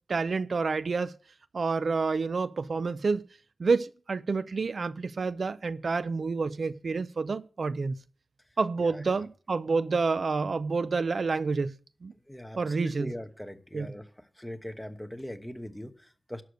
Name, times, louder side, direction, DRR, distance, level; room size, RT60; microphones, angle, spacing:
voice 1, 0.1-1.1 1.5-3.3 3.6-8.0 8.6-11.8 12.0-12.1 12.6-13.1 13.7-13.9, right 4 dB, 60° right, 0.4 m, -28 dB
voice 2, 8.8-9.2 12.3-14.1 14.4-16.4, left 1 dB, 5° left, 1.0 m, -41 dB
11.5 x 6.6 x 6.4 m
wide cardioid pair, 115°, 0 cm